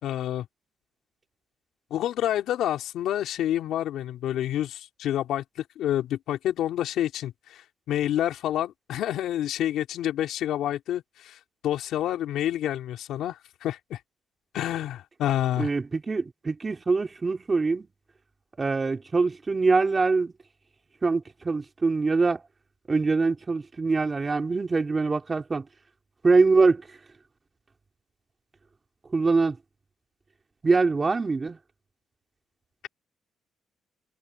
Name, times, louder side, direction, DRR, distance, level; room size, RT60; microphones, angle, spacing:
voice 1, 0.0-0.5 1.9-11.4 11.6-14.0 14.5-15.7, left 12 dB, 80° left, 3.6 m, -28 dB
voice 2, 15.6-17.9 18.6-20.3 21.0-22.4 22.9-25.7 26.2-26.9 29.1-29.6 30.6-31.6, right 4 dB, 30° right, 4.4 m, -23 dB
cardioid pair, 90°, 0 cm